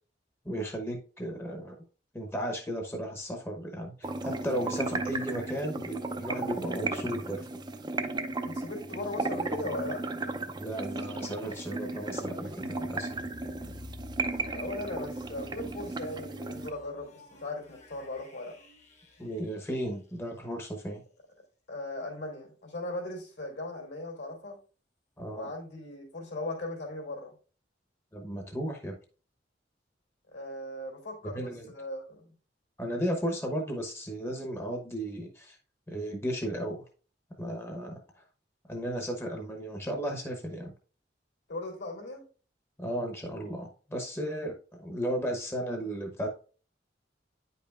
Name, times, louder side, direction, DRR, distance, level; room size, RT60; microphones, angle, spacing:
voice 1, 0.4-1.7 2.1-7.5 10.6-13.1 19.2-21.0 25.2-25.5 28.1-29.0 31.2-31.7 32.8-35.6 35.9-36.8 37.4-38.0 38.7-40.7 42.8-46.3, equal, 15° left, 2 dB, 0.9 m, -35 dB
sound 1, 4.0-16.7, right 3 dB, 25° right, 0.5 m, -35 dB
voice 2, 8.4-10.2 14.4-18.5 21.7-24.6 25.3-27.3 30.3-32.3 41.5-42.2, left 2 dB, 70° left, 1 dB, 3.1 m, -38 dB
sound 2, 10.9-20.7, left 1 dB, 40° left, 1.1 m, -52 dB
9.5 x 5.4 x 2.4 m, 0.38 s
head